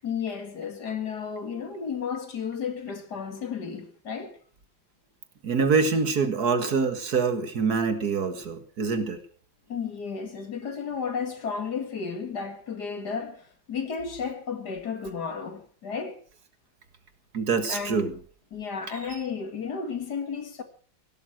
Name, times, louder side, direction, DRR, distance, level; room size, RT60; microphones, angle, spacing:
voice 1, 0.0-4.4 9.7-16.2 17.7-18.2 18.5-20.6, left 6 dB, 60° left, 2.5 m, -33 dB
voice 2, 5.4-9.2 17.3-18.1, right 5 dB, 55° right, 2.1 m, -25 dB
17.0 x 12.0 x 6.3 m
omnidirectional pair, 2.1 m